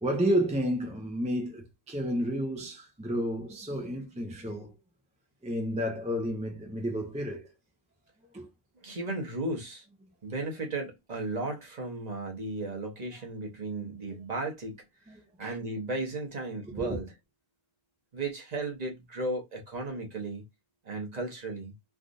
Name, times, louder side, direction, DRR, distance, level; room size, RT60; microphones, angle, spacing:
voice 1, 0.0-4.7 5.4-7.4 8.3-8.5 14.1-14.2 15.1-15.6 16.8-17.0, equal, 10° right, 0.5 m, -31 dB
voice 2, 8.8-9.8 10.2-14.7 15.4-17.1 18.1-20.4 20.9-21.7, right 2 dB, 40° right, 1.0 m, -35 dB
3.4 x 2.5 x 2.5 m
omnidirectional pair, 1.1 m